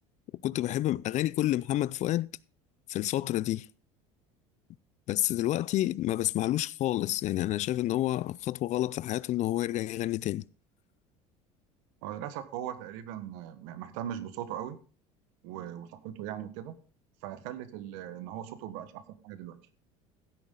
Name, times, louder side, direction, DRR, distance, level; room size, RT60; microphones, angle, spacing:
voice 1, 0.4-2.3 2.9-3.7 5.1-10.4, left 14 dB, 50° left, 0.5 m, -29 dB
voice 2, 12.0-14.8 15.4-16.7 17.2-19.6, right 11 dB, 80° right, 1.5 m, -39 dB
15.0 x 8.9 x 3.8 m
supercardioid pair, 100°, 16 cm